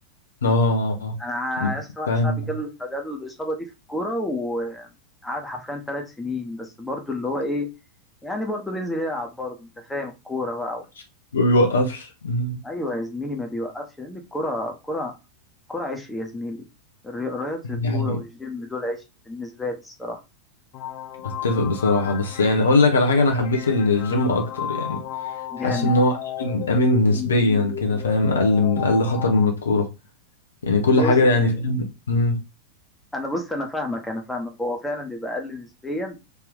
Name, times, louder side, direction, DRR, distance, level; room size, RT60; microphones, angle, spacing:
voice 1, 0.4-1.1 1.6-1.8 2.1-2.5 11.3-12.6 17.7-18.2 21.2-25.0 25.6-29.9 30.6-32.4, left 2 dB, 70° left, 0.8 m, -21 dB
voice 2, 1.2-4.9 5.2-7.7 8.2-10.8 12.6-15.1 15.7-16.6 17.0-20.2 25.5-25.9 30.9-31.6 33.1-36.2, left 1 dB, 5° left, 1.0 m, -30 dB
sound 1, 20.7-29.5, left 10 dB, 45° left, 0.4 m, -34 dB
3.4 x 2.9 x 3.6 m
figure-of-eight pair, 90°, 0 cm